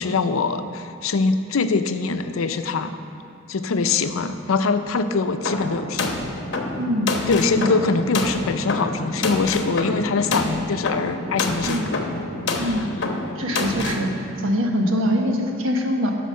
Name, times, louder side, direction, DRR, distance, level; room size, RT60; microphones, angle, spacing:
voice 1, 0.0-2.9 3.5-6.2 7.3-12.0 12.5-12.9, left 4 dB, 85° left, 9 dB, 0.5 m, -23 dB
sound 1, 5.4-14.1, left 2 dB, 55° left, 0.9 m, -27 dB
voice 2, 6.8-7.1 7.6-7.7 11.7-11.9 12.6-12.8 13.4-14.1 14.4-16.1, equal, 80° right, 2 dB, 1.2 m, -23 dB
12.0 x 5.1 x 6.4 m, 2.8 s
head